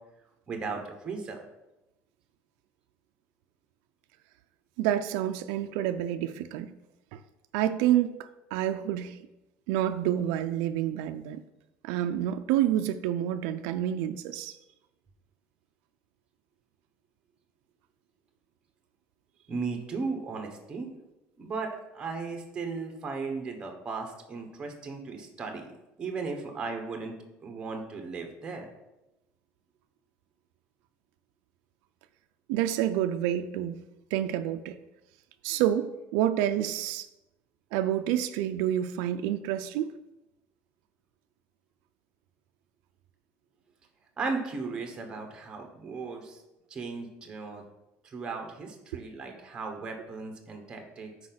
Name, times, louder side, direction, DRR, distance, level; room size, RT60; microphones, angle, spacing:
voice 1, 0.5-1.4 19.5-20.9 21.4-25.7 26.0-27.1 27.4-28.7 44.2-46.4 46.7-47.6 48.0-51.1, right 4 dB, 20° right, 3 dB, 1.1 m, -36 dB
voice 2, 4.8-6.7 7.1-7.2 7.5-9.2 9.7-11.4 11.8-14.6 32.5-33.8 34.1-34.8 35.4-37.1 37.7-39.9, right 11 dB, 85° right, 9 dB, 0.4 m, -28 dB
6.3 x 4.8 x 5.7 m, 0.94 s
cardioid pair, 175°, 5 cm